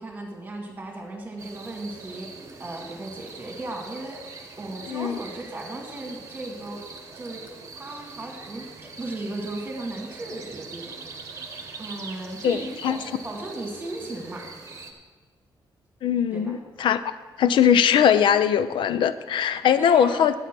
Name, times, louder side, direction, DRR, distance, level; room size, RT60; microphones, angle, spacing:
voice 1, 0.0-2.3 2.6-4.2 4.6-6.8 7.1-7.4 7.7-10.9 11.8-14.5 16.3-16.5 19.8-20.3, right 2 dB, 20° right, 1 dB, 2.0 m, -36 dB
sound 1, 1.4-14.9, right 4 dB, 35° right, 1.1 m, -42 dB
voice 2, 4.9-5.2 12.4-13.0 16.0-17.0 17.4-20.3, left 8 dB, 75° left, 14 dB, 0.5 m, -20 dB
11.0 x 8.7 x 6.0 m, 1.4 s
wide cardioid pair, 180°, 8 cm